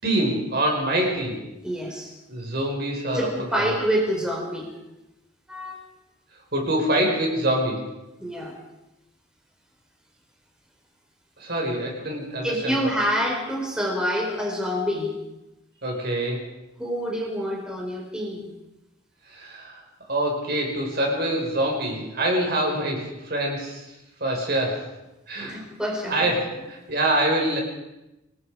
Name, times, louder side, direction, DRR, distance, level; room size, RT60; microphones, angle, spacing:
voice 1, 0.0-1.4 2.3-3.7 6.5-7.9 11.4-12.9 15.8-16.5 19.3-19.8 20.1-23.9 24.2-24.9 25.3-25.6 26.1-27.6, right 1 dB, 50° right, 0 dB, 5.3 m, -25 dB
voice 2, 1.6-2.1 3.1-4.7 5.5-5.8 8.2-8.5 12.4-15.2 16.8-18.5 25.4-26.3, equal, 5° right, -2 dB, 4.6 m, -27 dB
28.0 x 20.0 x 5.0 m, 0.95 s
head